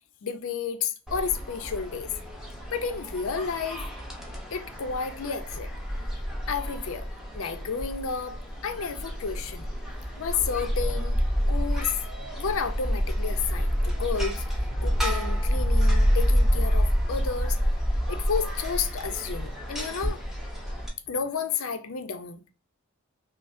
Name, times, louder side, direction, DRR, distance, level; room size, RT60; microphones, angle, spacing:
voice 1, 0.2-2.1 2.7-3.8 4.5-6.0 6.5-7.1 7.3-9.7 10.2-11.2 11.5-11.9 12.4-14.4 14.8-17.6 18.1-20.2 21.1-22.5, left 6 dB, 70° left, 0.5 m, -31 dB
sound 1, 1.1-20.9, equal, ahead, 0.8 m, -28 dB
5.4 x 2.0 x 2.5 m
head